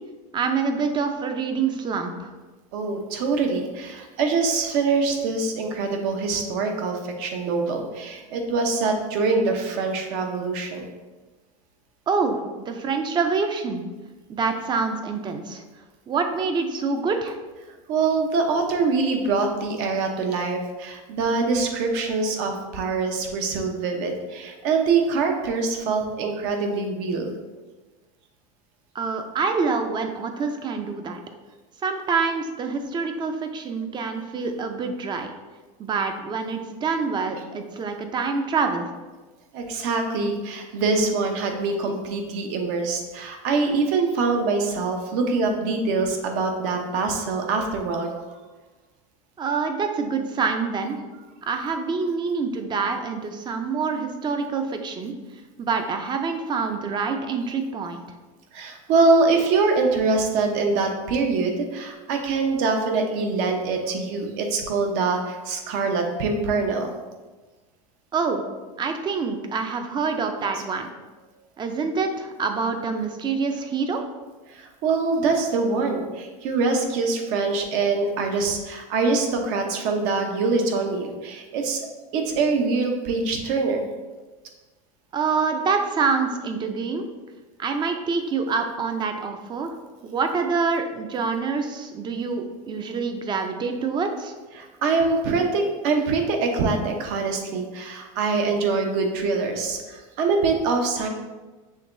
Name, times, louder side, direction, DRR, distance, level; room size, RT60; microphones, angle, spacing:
voice 1, 0.3-2.3 12.1-12.4 12.7-13.8 14.3-15.6 16.1-17.4 28.9-31.2 31.8-35.3 35.8-38.9 49.4-51.0 51.4-55.1 55.6-58.0 68.1-68.4 68.8-70.9 71.6-74.0 85.1-87.0 87.6-89.7 90.0-94.3, right 5 dB, 25° right, 6 dB, 0.5 m, -26 dB
voice 2, 2.7-10.9 17.9-27.3 39.5-48.1 51.6-51.7 58.5-66.9 74.5-81.8 82.1-83.9 94.5-101.1, right 4 dB, 65° right, 3 dB, 0.8 m, -24 dB
6.5 x 2.9 x 2.6 m, 1.2 s
supercardioid pair, 115°, 18 cm